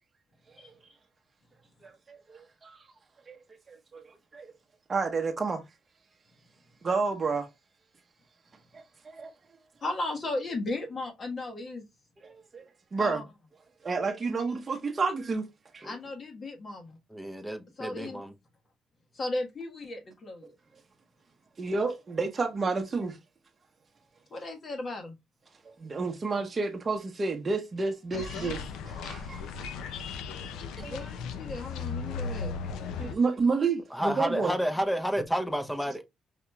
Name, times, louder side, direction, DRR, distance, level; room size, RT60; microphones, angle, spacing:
voice 1, 1.8-2.8 3.3-3.4 3.7-4.0 4.3-4.5 4.9-5.6 6.8-7.5 8.7-9.3 12.2-12.6 12.9-13.2 13.8-15.5 15.7-15.9 21.6-23.2 25.6-29.7 30.8-31.1 33.0-34.5, right 4 dB, 35° right, 0.7 m, -30 dB
voice 2, 9.8-11.9 13.0-13.2 15.8-17.0 17.8-18.2 19.1-20.5 24.3-25.1 30.8-32.5, left 2 dB, 45° left, 1.3 m, -35 dB
voice 3, 17.1-18.3 33.9-36.0, equal, 5° left, 0.7 m, -30 dB
sound 1, 28.1-33.1, left 5 dB, 90° left, 0.5 m, -36 dB
5.0 x 2.8 x 2.2 m
cardioid pair, 90°, 0 cm